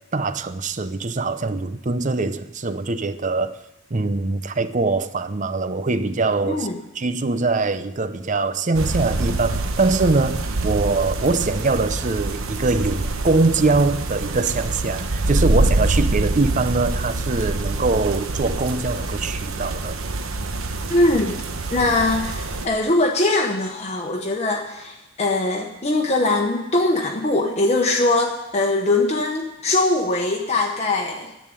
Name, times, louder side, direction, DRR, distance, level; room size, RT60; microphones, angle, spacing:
voice 1, 0.1-3.6 3.9-6.7 6.9-20.0, right 3 dB, 35° right, 0.6 m, -23 dB
sound 1, 8.7-22.7, right 2 dB, 85° right, 1.0 m, -25 dB
voice 2, 20.9-21.3 21.7-31.3, left 2 dB, 30° left, 1.0 m, -21 dB
11.0 x 8.4 x 9.9 m
head